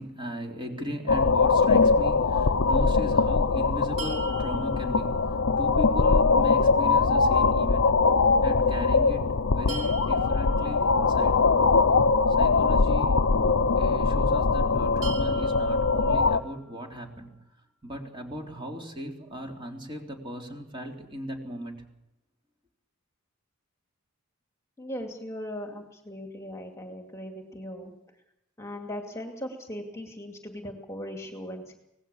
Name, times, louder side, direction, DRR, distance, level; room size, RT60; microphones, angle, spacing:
voice 1, 0.0-7.9 8.4-11.4 12.4-13.2 13.8-17.3 17.8-21.8, equal, 25° right, 1 dB, 3.7 m, -37 dB
sound 1, 1.1-16.4, left 4 dB, 60° left, 0.7 m, -22 dB
sound 2, 4.0-5.9 9.7-11.7 15.0-17.0, right 4 dB, 80° right, 5.5 m, -43 dB
voice 2, 24.8-27.9 28.6-31.7, equal, 15° left, 3 dB, 2.4 m, -38 dB
25.0 x 19.0 x 7.1 m, 0.85 s
head